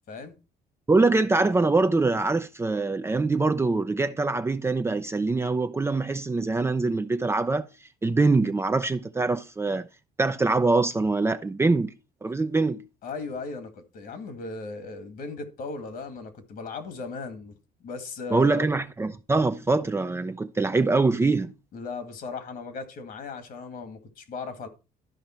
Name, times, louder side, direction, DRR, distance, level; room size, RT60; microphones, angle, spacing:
voice 1, 0.9-7.7 8.0-9.9 10.2-11.9 12.2-12.8 18.3-21.5, right 3 dB, 15° right, 0.5 m, -24 dB
voice 2, 13.0-18.7 21.7-24.7, left 4 dB, 60° left, 2.0 m, -37 dB
12.5 x 5.1 x 4.4 m
cardioid pair, 110°, 17 cm